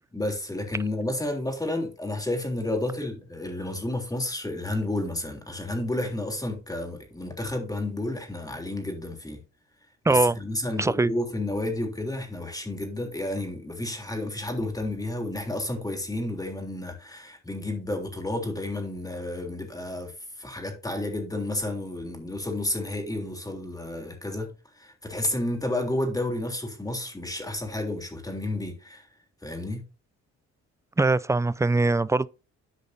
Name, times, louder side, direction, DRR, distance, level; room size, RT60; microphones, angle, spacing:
voice 1, 0.1-9.4 10.1-29.1 29.4-29.8, left 1 dB, 10° left, 3.3 m, -31 dB
voice 2, 10.1-10.4 10.8-11.1 31.0-32.3, right 3 dB, 10° right, 0.3 m, -22 dB
13.5 x 5.1 x 2.7 m
cardioid pair, 90°, 30 cm